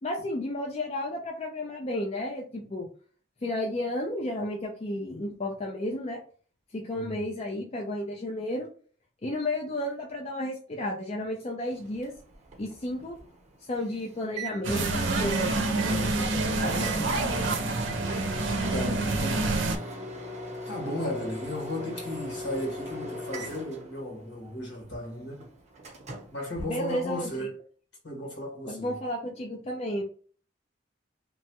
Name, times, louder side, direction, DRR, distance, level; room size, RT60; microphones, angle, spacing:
voice 1, 0.0-2.9 3.4-6.2 6.7-8.7 9.2-12.1 12.6-13.2 13.6-17.2 26.6-27.5 28.7-30.0, left 1 dB, 35° left, 0.5 m, -33 dB
Microwave oven, 11.7-27.4, right 1 dB, 40° right, 0.9 m, -40 dB
sound 1, 14.6-19.8, right 2 dB, 90° right, 0.6 m, -27 dB
voice 2, 17.8-18.2 18.7-19.7 20.6-25.4 26.3-27.6 28.0-29.0, left 1 dB, 65° left, 1.4 m, -35 dB
2.9 x 2.2 x 2.8 m
head